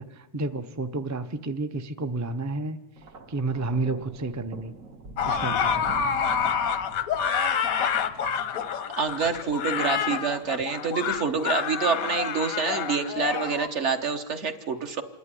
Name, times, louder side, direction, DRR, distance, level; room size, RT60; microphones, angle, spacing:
voice 1, 0.0-2.8 3.3-4.7 5.2-6.2, right 3 dB, 25° right, 8 dB, 0.3 m, -31 dB
Thunder, 3.0-9.3 10.3-10.6, right 3 dB, 75° right, 1.8 m, -44 dB
sound 1, 5.2-13.7, left 7 dB, 90° left, 1.3 m, -27 dB
voice 2, 9.0-15.0, right 5 dB, 60° right, 6 dB, 1.4 m, -27 dB
26.5 x 11.0 x 9.9 m, 1.2 s
omnidirectional pair, 1.4 m